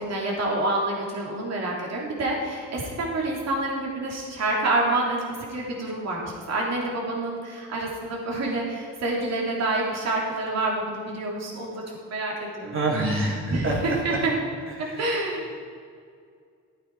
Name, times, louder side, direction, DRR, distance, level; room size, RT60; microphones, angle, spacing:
voice 1, 0.0-11.8 12.1-12.7 13.5-14.3 15.0-15.5, right 2 dB, 60° right, -2 dB, 3.3 m, -27 dB
voice 2, 12.7-14.2 14.8-15.0, right 2 dB, 45° right, -2 dB, 3.2 m, -27 dB
12.5 x 8.7 x 4.8 m, 2.2 s
cardioid pair, 90°, 30 cm